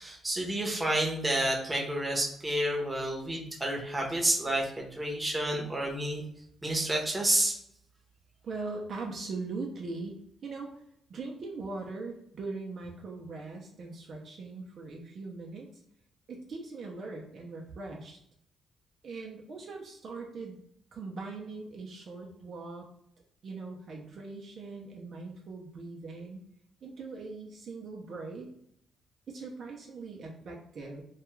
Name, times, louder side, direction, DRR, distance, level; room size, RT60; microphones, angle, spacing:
voice 1, 0.0-6.2 6.6-7.6, right 1 dB, 15° right, -1 dB, 0.8 m, -30 dB
voice 2, 8.4-10.7 11.1-15.8 16.3-18.2 19.0-20.6 20.9-22.9 23.4-26.4 26.8-28.5 29.3-31.0, right 3 dB, 55° right, 0 dB, 0.5 m, -40 dB
2.3 x 2.3 x 3.0 m, 0.72 s
cardioid pair, 90°, 0 cm